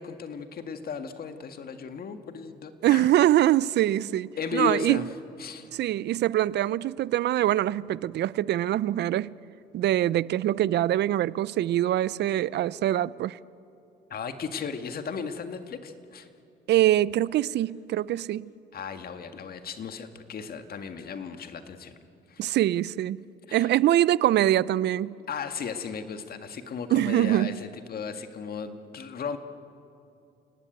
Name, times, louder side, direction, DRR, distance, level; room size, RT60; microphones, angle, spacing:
voice 1, 0.0-3.1 4.4-5.1 5.4-5.7 14.1-16.3 18.7-22.0 22.3-22.4 23.5-23.7 25.3-29.4, left 6 dB, 55° left, 1.8 m, -35 dB
voice 2, 2.8-5.1 5.7-9.3 9.7-13.4 16.7-18.5 22.4-23.2 23.5-25.2 26.9-27.6, right 13 dB, 65° right, 0.5 m, -24 dB
28.5 x 18.5 x 9.2 m
cardioid pair, 85°, 19 cm